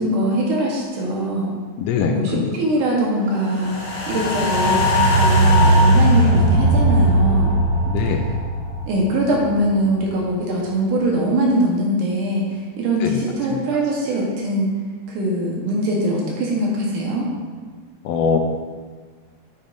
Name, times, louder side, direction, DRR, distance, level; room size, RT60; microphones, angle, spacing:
voice 1, 0.0-1.5 2.1-3.8 4.1-7.6 8.9-14.7 15.1-17.3, right 1 dB, 85° right, -3 dB, 2.8 m, -22 dB
voice 2, 1.8-2.5 7.9-8.3 13.0-13.2 13.5-13.6 18.0-18.4, left 6 dB, 85° left, 3 dB, 1.5 m, -22 dB
sound 1, 3.5-9.9 10.3-10.4, equal, 40° left, 1.0 m, -18 dB
8.9 x 8.8 x 2.6 m, 1.5 s
omnidirectional pair, 3.5 m